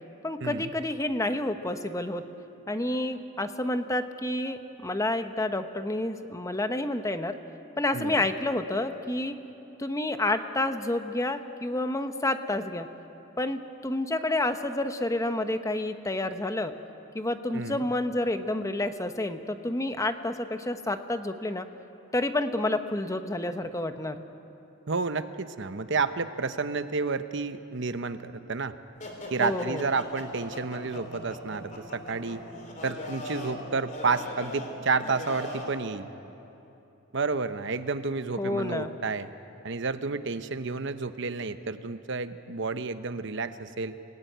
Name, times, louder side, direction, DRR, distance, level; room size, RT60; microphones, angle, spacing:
voice 1, 0.2-2.2 2.7-7.4 7.8-9.4 9.8-12.9 13.4-16.7 17.1-21.7 22.1-24.2 29.4-29.8 38.4-38.9, left 1 dB, 15° left, 8 dB, 1.0 m, -29 dB
voice 2, 7.9-8.3 17.5-17.9 24.9-28.8 29.3-32.4 32.8-36.1 37.1-39.3 39.6-44.0, right 4 dB, 65° right, 11 dB, 0.9 m, -30 dB
sound 1, 29.0-35.8, left 1 dB, 40° left, 3.6 m, -40 dB
28.5 x 19.0 x 9.3 m, 2.9 s
head